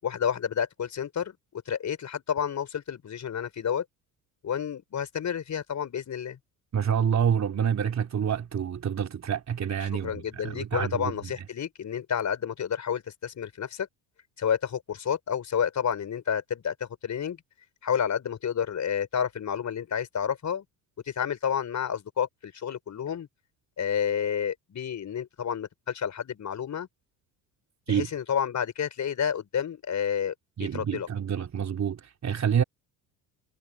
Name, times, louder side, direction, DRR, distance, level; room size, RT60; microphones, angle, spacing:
voice 1, 0.0-1.4 1.7-3.8 4.4-6.4 10.0-13.9 14.4-17.4 17.8-20.6 21.1-23.3 23.8-26.9 27.9-31.1, left 8 dB, 40° left, 5.5 m, -30 dB
voice 2, 6.7-11.3 27.9-28.1 30.6-32.6, right 8 dB, 35° right, 3.3 m, -27 dB
figure-of-eight pair, 60°, 46 cm